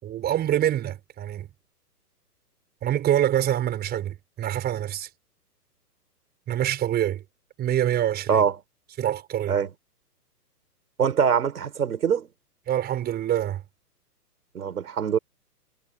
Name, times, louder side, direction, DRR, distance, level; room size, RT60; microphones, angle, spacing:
voice 1, 0.0-1.5 2.8-5.1 6.5-7.2 7.6-8.4 9.0-9.6 12.7-13.6, right 11 dB, 20° right, 5.9 m, -25 dB
voice 2, 11.0-12.3 14.6-15.2, right 7 dB, 65° right, 5.3 m, -23 dB
hypercardioid pair, 125°, 48 cm